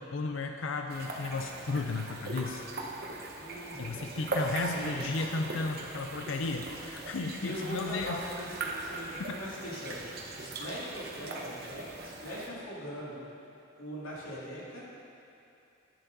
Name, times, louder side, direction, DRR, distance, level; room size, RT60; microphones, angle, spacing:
voice 1, 0.0-2.6 3.8-8.2, left 3 dB, 70° left, 4 dB, 0.5 m, -34 dB
sound 1, 0.9-12.5, right 2 dB, 50° right, 1.0 m, -40 dB
voice 2, 3.4-4.1 4.4-5.0 7.4-13.3 13.8-14.8, equal, 90° left, -6 dB, 2.5 m, -41 dB
10.5 x 10.0 x 3.8 m, 2.8 s
head